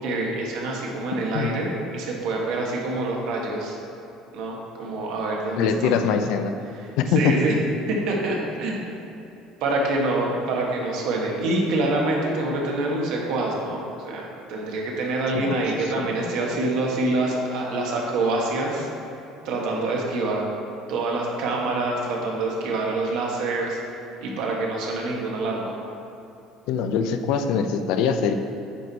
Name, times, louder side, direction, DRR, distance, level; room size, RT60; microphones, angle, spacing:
voice 1, 0.0-3.8 4.3-6.0 7.1-7.5 7.9-8.9 9.6-18.9 19.4-20.4 20.9-23.8 24.2-25.8, right 2 dB, 70° right, -2 dB, 1.4 m, -26 dB
voice 2, 5.6-6.5 7.0-7.3 15.3-15.6 16.1-16.6 26.7-28.3, left 6 dB, 70° left, 7 dB, 0.5 m, -23 dB
8.9 x 4.6 x 4.1 m, 2.9 s
cardioid pair, 140°, 0 cm